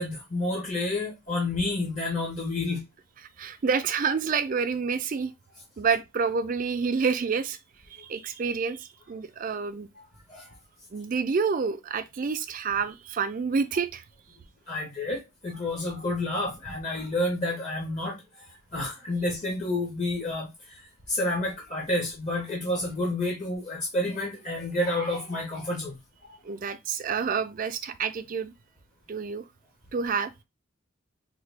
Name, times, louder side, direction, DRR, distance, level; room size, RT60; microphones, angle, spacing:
voice 1, 0.0-2.8 10.0-10.1 10.3-10.6 14.7-26.3, left 1 dB, 35° left, 0.7 m, -30 dB
voice 2, 3.4-5.3 5.8-7.6 7.9-9.9 10.9-14.0 26.4-28.5 29.1-29.4 29.9-30.3, right 5 dB, 40° right, 0.3 m, -28 dB
3.6 x 2.2 x 3.3 m
head